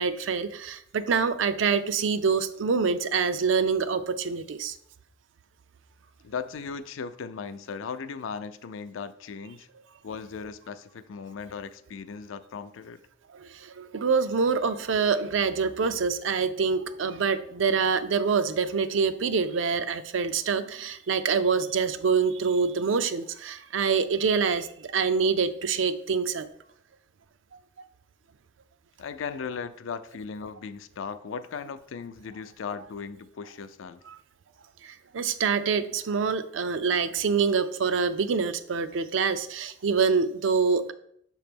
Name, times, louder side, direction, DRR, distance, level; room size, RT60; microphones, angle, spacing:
voice 1, 0.0-4.7 13.8-26.5 34.1-34.2 35.1-40.9, right 5 dB, 75° right, 12 dB, 0.4 m, -25 dB
voice 2, 6.2-9.7 10.0-13.0 29.0-34.0, left 5 dB, 85° left, 11 dB, 0.4 m, -37 dB
6.6 x 3.1 x 5.1 m, 0.69 s
head